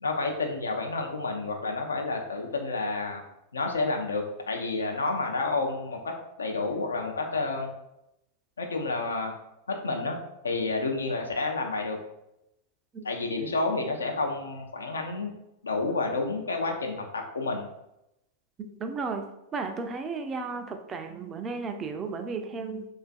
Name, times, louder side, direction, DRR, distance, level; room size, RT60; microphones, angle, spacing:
voice 1, 0.0-3.2 3.5-7.7 8.6-9.3 9.7-10.2 10.4-12.0 13.0-15.3 15.6-17.7, left 3 dB, 75° left, 3 dB, 0.5 m, -30 dB
voice 2, 18.6-19.2 19.5-22.9, right 4 dB, 25° right, 5 dB, 0.4 m, -34 dB
3.7 x 2.4 x 2.3 m, 0.85 s
figure-of-eight pair, 90°, 0 cm